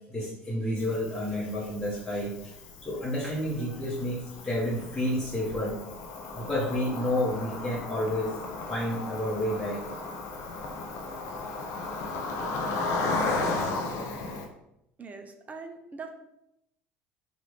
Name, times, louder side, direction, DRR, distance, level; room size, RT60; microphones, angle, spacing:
voice 1, 0.0-2.6 2.8-5.8 6.3-8.4 8.7-9.8, left 1 dB, 10° left, -7 dB, 1.0 m, -30 dB
Cricket, 0.8-14.5, left 3 dB, 60° left, 0.5 m, -35 dB
voice 2, 15.0-16.2, right 4 dB, 25° right, 6 dB, 0.5 m, -42 dB
3.0 x 2.4 x 3.4 m, 0.83 s
hypercardioid pair, 65°, 6 cm